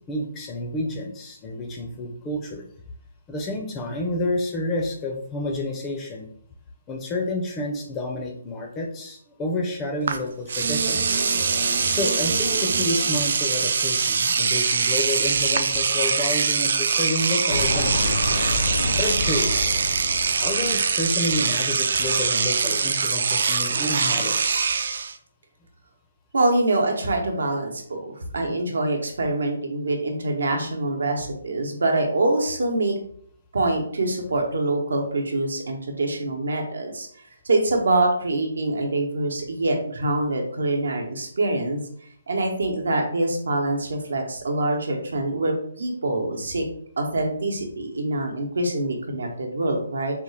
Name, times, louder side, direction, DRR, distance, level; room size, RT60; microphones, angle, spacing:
voice 1, 0.1-2.7 3.3-6.3 6.9-11.2 11.9-18.1 19.0-19.7 20.4-24.7, left 1 dB, 15° left, 2 dB, 0.4 m, -29 dB
Engine / Domestic sounds home sounds, 10.1-10.2 10.5-25.1, right 5 dB, 60° right, 0.3 m, -23 dB
sound 1, 10.6-13.6 16.1-16.2, right 4 dB, 40° right, 0.7 m, -33 dB
sound 2, 17.5-21.5, left 2 dB, 75° left, 0.6 m, -28 dB
voice 2, 26.3-32.9 33.5-37.1 37.4-41.9 42.3-46.6 47.0-50.2, right 2 dB, 85° right, 2 dB, 0.9 m, -25 dB
3.5 x 2.3 x 3.2 m, 0.63 s
hypercardioid pair, 165°, 0 cm